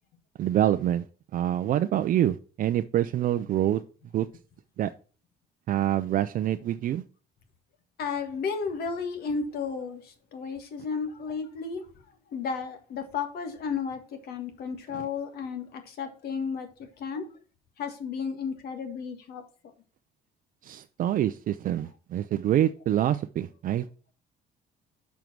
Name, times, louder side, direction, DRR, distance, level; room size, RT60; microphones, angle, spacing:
voice 1, 0.4-1.0 1.3-3.8 4.1-4.3 4.8-4.9 5.7-7.0 14.9-15.0 20.6-23.9, right 12 dB, 55° right, 0.5 m, -26 dB
voice 2, 8.0-11.9 12.3-16.7 17.0-17.3 17.8-19.4, left 5 dB, 65° left, 1.7 m, -33 dB
7.1 x 4.6 x 6.0 m
cardioid pair, 110°, 17 cm